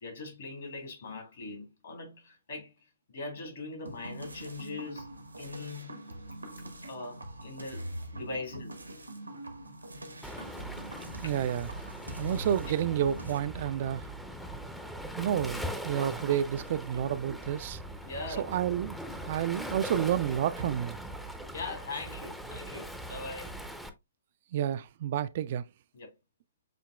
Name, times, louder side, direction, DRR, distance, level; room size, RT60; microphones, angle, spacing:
voice 1, 0.0-2.7 3.1-6.0 6.8-7.9 8.1-8.8 10.4-10.6 11.2-11.3 18.0-18.4 21.5-23.6 25.9-26.1, left 3 dB, 60° left, 3.2 m, -41 dB
sound 1, 3.9-13.4, right 1 dB, 90° right, 1.0 m, -43 dB
Waves surf, 10.2-23.9, right 1 dB, ahead, 0.6 m, -41 dB
voice 2, 11.2-11.7 12.1-14.1 15.2-17.8 18.4-21.0 24.5-25.6, right 10 dB, 45° right, 0.3 m, -30 dB
7.5 x 2.8 x 2.2 m
figure-of-eight pair, 120°, 0 cm